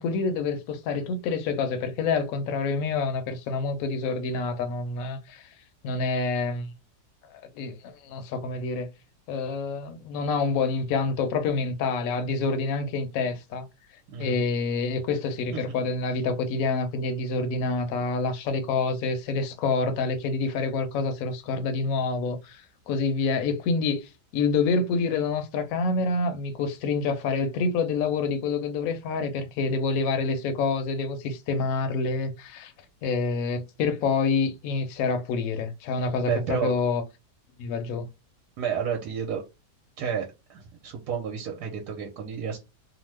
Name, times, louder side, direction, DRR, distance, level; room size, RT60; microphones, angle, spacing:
voice 1, 0.0-5.5 5.8-6.7 7.6-8.9 9.3-13.7 14.2-32.7 33.0-37.0 37.6-38.1, left 4 dB, 65° left, 0.9 m, -27 dB
voice 2, 14.1-14.4 15.5-15.6 36.2-36.7 38.6-39.4 40.0-42.6, right 7 dB, 75° right, 1.2 m, -31 dB
2.9 x 2.1 x 3.2 m
omnidirectional pair, 1.8 m